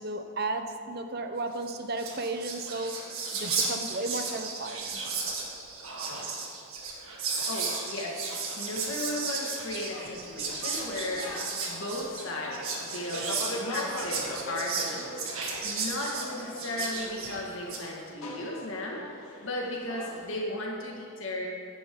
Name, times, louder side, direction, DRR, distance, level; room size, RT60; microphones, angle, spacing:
voice 1, 0.0-2.9 3.3-5.0, right 2 dB, 45° right, 7 dB, 0.8 m, -34 dB
Whispering, 1.6-1.7 1.9-17.9, right 4 dB, 80° right, 1.9 m, -34 dB
voice 2, 7.2-19.0 19.4-21.5, left 1 dB, 65° left, -2 dB, 1.8 m, -36 dB
sound 1, 9.6-20.3, left 1 dB, 80° left, 1.9 m, -41 dB
16.0 x 11.0 x 3.8 m, 2.5 s
head